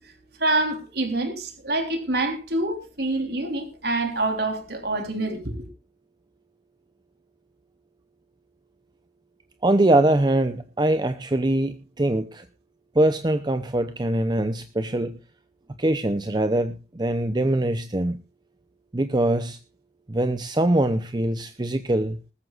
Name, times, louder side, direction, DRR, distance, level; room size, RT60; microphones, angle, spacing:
voice 1, 0.4-5.5, right 2 dB, 65° right, 3.6 m, -26 dB
voice 2, 9.6-12.5 12.9-15.2 15.8-18.2 18.9-19.6 20.1-22.2, right 1 dB, 25° right, 0.7 m, -23 dB
20.0 x 14.0 x 2.5 m
head